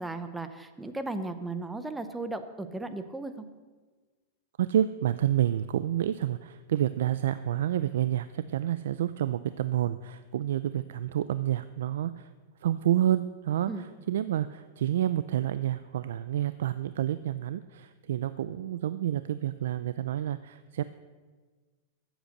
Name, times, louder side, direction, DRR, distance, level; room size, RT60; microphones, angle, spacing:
voice 1, 0.0-3.4 13.7-13.8, right 2 dB, 5° right, 10 dB, 0.7 m, -36 dB
voice 2, 4.6-12.3 12.6-20.8, right 11 dB, 80° right, 14 dB, 0.4 m, -29 dB
14.5 x 8.1 x 6.6 m, 1.4 s
supercardioid pair, 160°, 0 cm